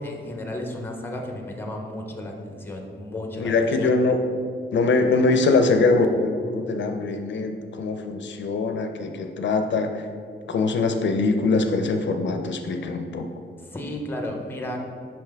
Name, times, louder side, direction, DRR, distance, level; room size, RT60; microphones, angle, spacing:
voice 1, 0.0-3.9 13.6-14.8, left 1 dB, 10° left, 2 dB, 0.6 m, -33 dB
voice 2, 3.3-4.2 4.7-10.1 10.5-13.3, left 3 dB, 70° left, 6 dB, 0.4 m, -22 dB
5.6 x 5.3 x 3.4 m, 2.3 s
wide cardioid pair, 175°, 20 cm